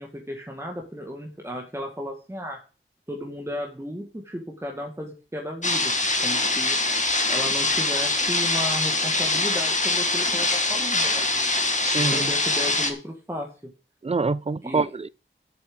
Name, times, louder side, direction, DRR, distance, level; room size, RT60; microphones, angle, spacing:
voice 1, 0.0-2.6 3.1-6.8 7.3-11.5 12.0-13.7 14.6-14.9, equal, 15° right, 2.0 m, -34 dB
sound 1, 5.6-12.9, left 2 dB, 35° left, 1.8 m, -23 dB
voice 2, 11.8-12.3 14.0-15.1, right 4 dB, 30° right, 0.5 m, -26 dB
7.7 x 7.1 x 7.9 m
wide cardioid pair, 80°, 21 cm